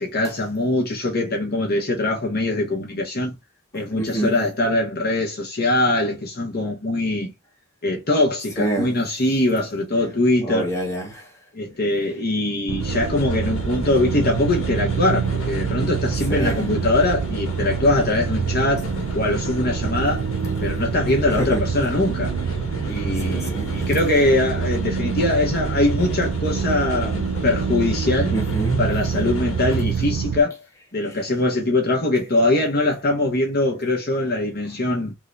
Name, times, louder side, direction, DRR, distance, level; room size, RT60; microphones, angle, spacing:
voice 1, 0.0-3.3 3.7-7.3 7.8-10.7 11.5-18.9 19.1-20.2 20.6-22.3 22.8-28.3 28.8-30.6 30.9-35.1, left 2 dB, 50° left, 1.2 m, -22 dB
voice 2, 4.0-4.4 8.6-8.9 10.4-11.3 16.3-16.6 21.3-21.6 22.8-23.9 28.3-28.8, right 2 dB, 15° left, 1.6 m, -27 dB
sound 1, 12.7-30.4, right 6 dB, 80° right, 0.3 m, -26 dB
sound 2, 12.8-29.8, left 2 dB, 85° left, 1.5 m, -34 dB
3.7 x 2.6 x 3.3 m
head